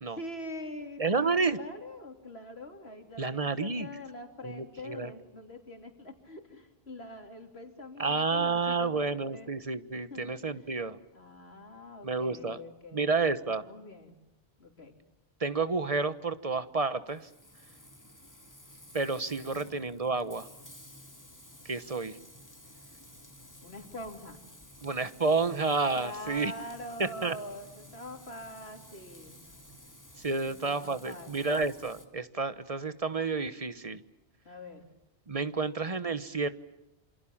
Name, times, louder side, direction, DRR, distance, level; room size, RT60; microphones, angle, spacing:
voice 1, 0.1-9.5 10.1-10.7 11.1-13.2 13.5-14.1 14.6-14.9 19.4-19.7 23.6-24.4 25.9-29.4 30.4-31.6 34.5-34.9, left 1 dB, 85° left, 4 dB, 3.7 m, -44 dB
voice 2, 1.0-1.6 3.2-3.9 4.4-5.1 8.0-11.0 12.0-12.6 12.9-13.6 15.4-17.3 18.9-20.5 21.6-22.2 24.8-26.5 27.0-27.3 30.2-34.0 35.3-36.5, right 4 dB, 35° right, 13 dB, 1.2 m, -30 dB
Frying (food), 17.1-32.1, left 1 dB, 15° left, 2.5 m, -53 dB
27.5 x 27.0 x 7.3 m, 0.90 s
omnidirectional pair, 1.0 m